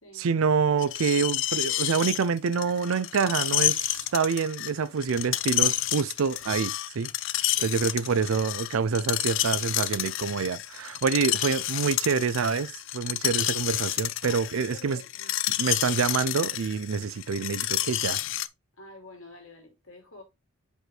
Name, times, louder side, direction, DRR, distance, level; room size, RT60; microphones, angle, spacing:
voice 1, 0.2-7.1 7.6-15.0 15.6-18.2, right 5 dB, 80° right, 0.5 m, -27 dB
Screech, 0.8-18.5, left 15 dB, 65° left, 0.4 m, -29 dB
voice 2, 7.6-8.0 11.5-11.7 14.2-15.4 18.7-20.2, left 2 dB, 80° left, 2.5 m, -49 dB
6.0 x 5.1 x 3.2 m
head